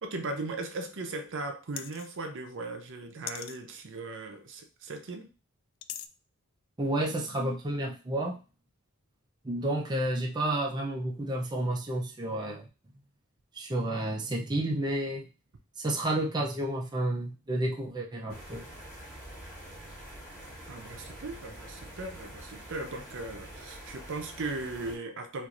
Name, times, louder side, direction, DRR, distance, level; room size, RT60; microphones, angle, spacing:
voice 1, 0.0-5.3 20.7-25.5, right 2 dB, 60° right, 0.7 m, -38 dB
sound 1, 1.8-2.2 3.3-3.6 5.8-6.1, left 11 dB, 60° left, 0.3 m, -39 dB
voice 2, 6.8-8.4 9.4-12.6 13.5-15.3 15.8-18.7, right 1 dB, 20° right, 0.5 m, -31 dB
sound 2, 18.3-25.0, right 1 dB, 5° left, 1.8 m, -46 dB
4.5 x 2.5 x 2.5 m
head